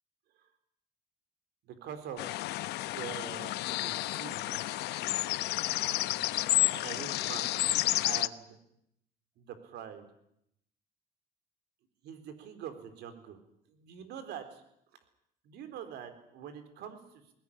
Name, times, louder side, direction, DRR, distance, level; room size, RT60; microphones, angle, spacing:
voice 1, 1.7-2.2 2.9-3.5 3.8-4.5 6.6-7.5 8.0-8.6 9.4-10.1 12.0-13.4 13.7-14.6 15.4-17.0, right 8 dB, 80° right, 9 dB, 3.9 m, -44 dB
sound 1, 2.2-8.3, left 17 dB, 85° left, 0.8 m, -31 dB
20.5 x 17.5 x 10.0 m, 0.75 s
cardioid pair, 110°, 17 cm